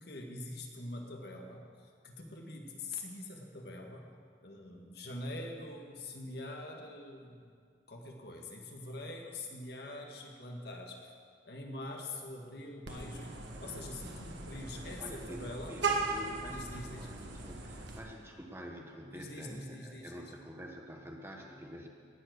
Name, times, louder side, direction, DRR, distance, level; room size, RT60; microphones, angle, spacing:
voice 1, 0.0-4.0 4.4-7.6 7.9-11.1 11.4-13.3 13.6-15.7 16.5-17.1 19.1-20.3, left 2 dB, 60° left, 1 dB, 1.8 m, -44 dB
Vehicle horn car horn honking, 12.8-18.0, right 4 dB, 75° right, 1.6 m, -38 dB
voice 2, 14.7-21.9, equal, 15° right, 1 dB, 1.3 m, -47 dB
18.5 x 7.7 x 6.4 m, 2.1 s
head